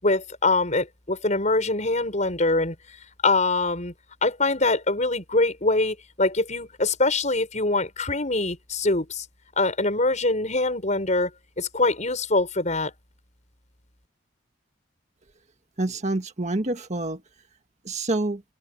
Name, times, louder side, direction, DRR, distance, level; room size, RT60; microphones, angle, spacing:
voice 1, 0.0-2.7 3.2-3.9 4.2-9.2 9.6-11.3 11.6-12.9, left 2 dB, 40° left, 6.5 m, -23 dB
voice 2, 15.8-17.2 17.8-18.4, right 2 dB, 40° right, 1.6 m, -27 dB
head